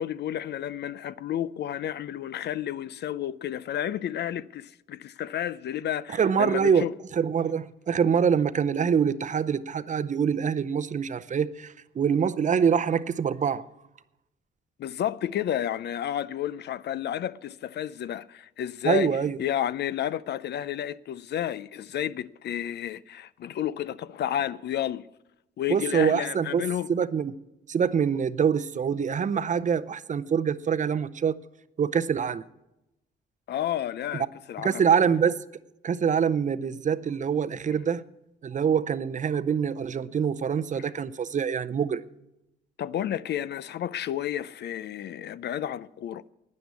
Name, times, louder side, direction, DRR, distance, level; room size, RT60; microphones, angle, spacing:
voice 1, 0.0-6.9 14.8-25.0 25.6-26.9 33.5-34.8 40.8-40.9 42.8-46.3, left 10 dB, 60° left, 0.5 m, -31 dB
voice 2, 6.2-6.9 7.1-13.6 18.8-19.4 25.7-26.6 26.9-27.3 27.7-31.4 31.8-32.4 34.6-35.4 35.8-38.0 38.4-42.0, right 7 dB, 40° right, 0.6 m, -25 dB
12.0 x 9.8 x 8.3 m
cardioid pair, 90°, 20 cm